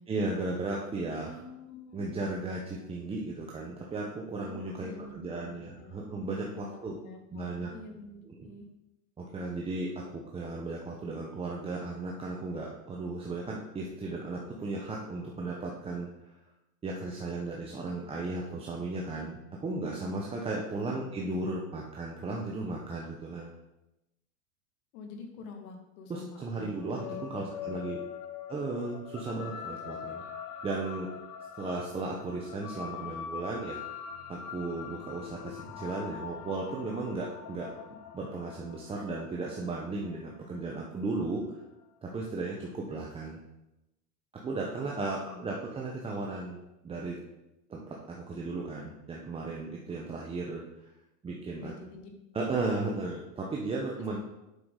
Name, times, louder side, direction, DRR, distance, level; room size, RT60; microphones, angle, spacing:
voice 1, 0.1-1.3 1.9-7.0 7.3-7.7 8.3-8.5 9.2-16.1 16.8-23.6 26.1-27.0 27.3-28.0 28.5-30.2 30.6-31.1 31.6-33.8 34.3-37.7 38.1-41.4 42.0-43.4 44.3-46.6 46.8-47.2 47.7-50.6 51.2-51.7 52.3-54.2, right 3 dB, 15° right, -2 dB, 0.7 m, -35 dB
voice 2, 1.2-2.1 4.5-6.1 6.5-8.7 20.3-20.4 20.7-21.2 24.9-27.7 44.8-45.5 51.5-52.1 53.4-53.5 54.0-54.2, left 3 dB, 65° left, 3 dB, 1.8 m, -47 dB
sound 1, 26.8-41.5, left 8 dB, 85° left, 1.0 m, -43 dB
8.1 x 5.9 x 3.7 m, 0.93 s
supercardioid pair, 130°, 46 cm